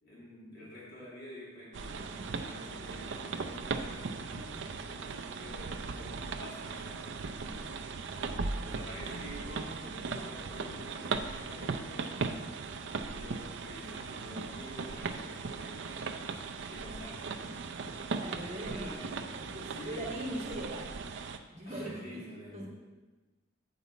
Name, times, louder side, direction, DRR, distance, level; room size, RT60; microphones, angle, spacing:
voice 1, 0.0-7.7 8.6-12.2 13.1-15.9 16.7-17.6 18.4-19.1 19.7-20.4 21.6-22.7, left 1 dB, 50° left, -6 dB, 2.1 m, -48 dB
sound 1, 1.7-21.4, right 4 dB, 60° right, 0.5 m, -38 dB
voice 2, 18.1-19.0 19.3-20.9 21.5-22.2 22.5-22.7, right 1 dB, 30° right, -4 dB, 1.6 m, -40 dB
8.1 x 5.5 x 4.2 m, 1.2 s
head